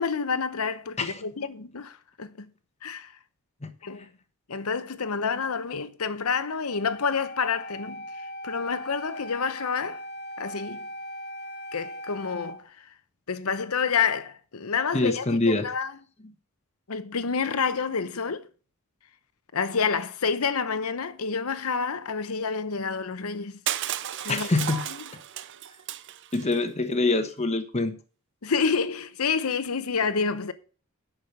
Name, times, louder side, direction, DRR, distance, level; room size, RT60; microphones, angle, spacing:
voice 1, 0.0-2.5 2.8-3.1 3.8-4.1 4.5-8.1 8.4-10.0 10.4-10.9 11.7-12.9 13.3-15.9 16.9-18.5 19.5-23.6 24.2-24.9 28.4-30.5, left 5 dB, 85° left, 0.9 m, -28 dB
Wind instrument woodwind instrument, 6.7-12.6, equal, 50° left, 1.2 m, -39 dB
voice 2, 14.9-15.7 24.3-24.8 26.3-28.0, left 2 dB, 30° left, 1.1 m, -25 dB
Crushing, 23.7-26.6, right 11 dB, 55° right, 0.5 m, -33 dB
9.8 x 6.3 x 6.6 m
head